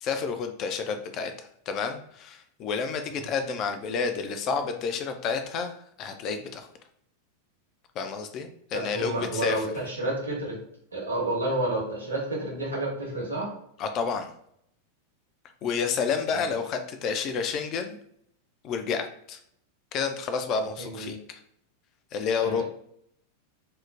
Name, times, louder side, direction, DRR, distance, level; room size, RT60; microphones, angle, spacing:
voice 1, 0.0-6.7 8.0-9.6 13.8-14.3 15.6-18.0 18.6-19.4 19.9-21.4 22.1-22.6, left 5 dB, 35° left, 7 dB, 0.3 m, -30 dB
voice 2, 8.7-10.6 10.9-13.5 20.8-21.2 22.4-22.6, right 2 dB, 80° right, -3 dB, 0.9 m, -30 dB
3.0 x 2.0 x 2.3 m, 0.69 s
figure-of-eight pair, 90°, 0 cm